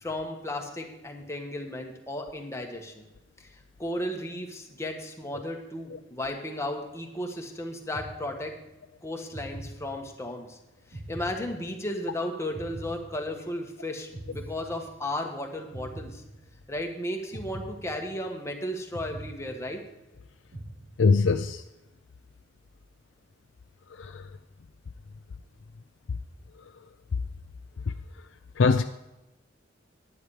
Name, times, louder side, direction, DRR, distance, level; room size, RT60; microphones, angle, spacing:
voice 1, 0.0-3.0 3.8-8.5 9.0-10.6 10.9-16.2 16.7-19.8, left 1 dB, 15° left, 2 dB, 1.5 m, -34 dB
sound 1, 7.9-8.8 9.3-10.4 10.9-12.1 12.5-13.7 14.1-15.3 15.7-16.8 17.3-18.5 18.9-20.1 20.5-21.4, right 1 dB, 80° right, 3.6 m, -43 dB
voice 2, 21.0-21.6 24.0-24.2 28.6-28.8, left 4 dB, 75° left, 8 dB, 0.5 m, -22 dB
10.5 x 9.8 x 4.9 m, 0.96 s
head